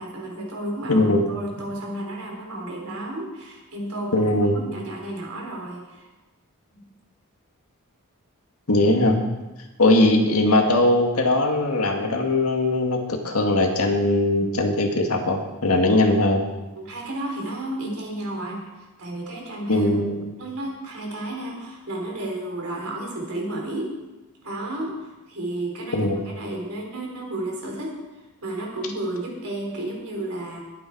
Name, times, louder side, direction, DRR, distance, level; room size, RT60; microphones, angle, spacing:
voice 1, 0.0-6.1 6.7-6.9 16.8-19.9 20.4-23.9 24.4-30.6, right 1 dB, 70° right, -1 dB, 4.4 m, -32 dB
voice 2, 0.9-1.2 4.1-4.6 8.7-9.2 9.8-16.4 19.7-20.2 25.9-26.2, left 2 dB, 70° left, 3 dB, 2.0 m, -20 dB
20.5 x 9.0 x 4.7 m, 1.1 s
head